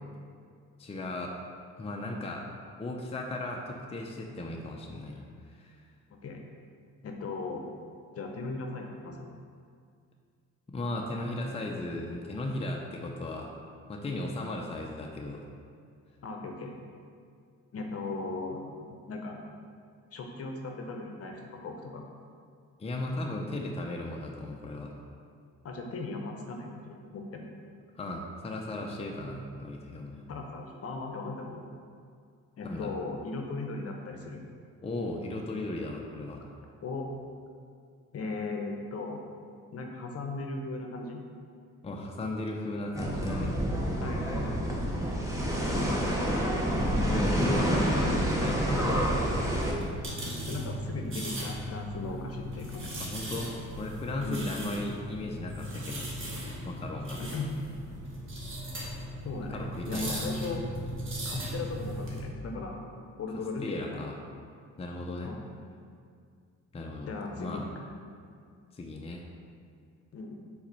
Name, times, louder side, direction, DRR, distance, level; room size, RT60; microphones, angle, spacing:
voice 1, 0.8-1.4 1.8-2.5 2.8-5.2 5.5-5.8 10.7-13.5 13.9-15.4 22.8-24.9 28.0-30.3 32.6-33.0 34.8-36.4 41.8-43.6 47.0-49.6 53.0-56.3 56.6-57.2 59.5-60.3 63.6-64.2 64.8-65.3 66.7-67.7 68.7-69.2, left 2 dB, 20° left, 0 dB, 0.6 m, -36 dB
voice 2, 6.1-6.4 7.0-7.6 8.1-9.3 16.2-16.7 17.7-19.4 20.1-22.0 25.6-27.5 30.3-31.6 32.6-34.4 36.8-37.1 38.1-39.2 39.7-41.2 44.0-44.8 45.7-46.3 50.5-53.1 54.2-54.5 57.2-57.5 59.2-60.6 61.2-62.8 63.2-64.0 65.2-65.4 67.1-67.6 70.1-70.4, left 3 dB, 50° left, 2 dB, 0.9 m, -37 dB
sound 1, 42.9-49.7, equal, 10° right, 1.1 m, -28 dB
sound 2, 48.5-62.2, equal, 45° right, 1.5 m, -38 dB
4.7 x 4.3 x 5.4 m, 2.2 s
cardioid pair, 90°, 30 cm